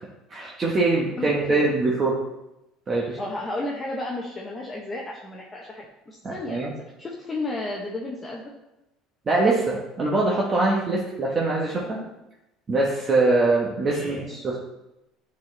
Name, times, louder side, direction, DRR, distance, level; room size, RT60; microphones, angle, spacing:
voice 1, 0.3-2.2 2.9-3.2 6.2-6.7 9.3-12.0 12.7-14.6, right 2 dB, 30° right, -3 dB, 1.1 m, -23 dB
voice 2, 1.2-1.7 3.2-6.6 7.0-8.4 11.8-12.1 13.8-14.3, left 2 dB, 20° left, -2 dB, 0.9 m, -33 dB
10.0 x 4.2 x 3.2 m, 0.92 s
cardioid pair, 130°, 0 cm